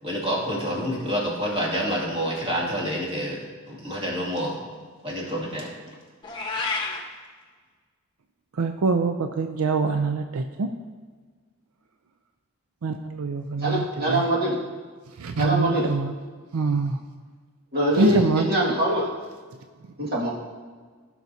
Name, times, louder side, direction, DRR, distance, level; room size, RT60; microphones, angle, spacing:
voice 1, 0.0-4.6 5.0-5.7, equal, 30° right, -4 dB, 2.3 m, -28 dB
Meow, 6.2-7.0, left 3 dB, 20° left, 1.1 m, -29 dB
voice 2, 8.5-10.8 12.8-14.3 15.2-16.1 16.5-17.0 17.9-18.4 20.0-20.1, right 3 dB, 85° right, 7 dB, 0.5 m, -25 dB
voice 3, 13.6-14.6 15.4-15.9 17.7-19.1 20.0-20.3, right 1 dB, 50° right, -5 dB, 2.0 m, -23 dB
16.0 x 6.0 x 2.7 m, 1.5 s
head